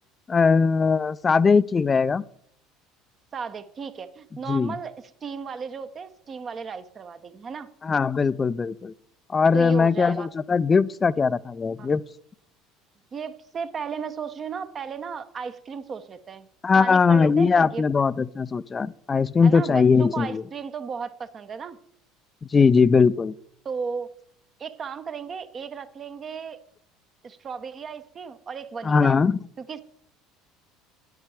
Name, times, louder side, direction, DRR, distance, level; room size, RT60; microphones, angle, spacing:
voice 1, 0.3-2.2 4.5-4.7 7.8-8.9 9.3-12.0 16.6-20.4 22.5-23.3 28.8-29.4, left 5 dB, 30° left, 19 dB, 0.4 m, -20 dB
voice 2, 3.3-5.0 5.2-7.7 9.5-10.3 11.8-11.9 13.1-16.5 16.7-17.8 19.4-21.8 23.6-24.1 24.6-26.6 27.2-29.2 29.6-29.8, right 6 dB, 40° right, 10 dB, 0.9 m, -35 dB
9.6 x 8.2 x 4.9 m, 0.68 s
hypercardioid pair, 65°, 0 cm